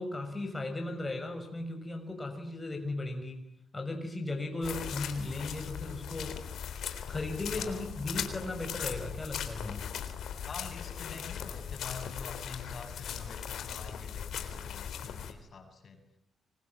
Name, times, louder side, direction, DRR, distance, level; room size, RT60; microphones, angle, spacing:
voice 1, 0.0-3.4 3.7-6.4 7.1-9.8, left 2 dB, 20° left, 4 dB, 6.8 m, -36 dB
sound 1, 4.6-15.3, left 8 dB, 80° left, 3.9 m, -39 dB
voice 2, 7.6-7.9 10.5-16.0, left 4 dB, 50° left, 6 dB, 7.8 m, -46 dB
26.5 x 24.0 x 9.2 m, 0.71 s
cardioid pair, 80°, 0 cm